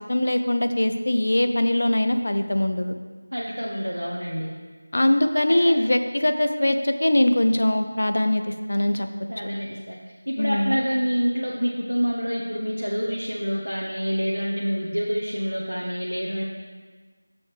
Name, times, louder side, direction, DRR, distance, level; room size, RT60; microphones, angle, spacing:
voice 1, 0.1-2.9 4.9-9.1 10.4-10.8, left 1 dB, 50° left, 7 dB, 0.6 m, -22 dB
voice 2, 3.3-4.5 5.6-5.7 9.3-10.0 10.3-16.4, equal, 80° right, -3 dB, 1.0 m, -27 dB
9.4 x 7.0 x 3.5 m, 1.4 s
figure-of-eight pair, 170°, 0 cm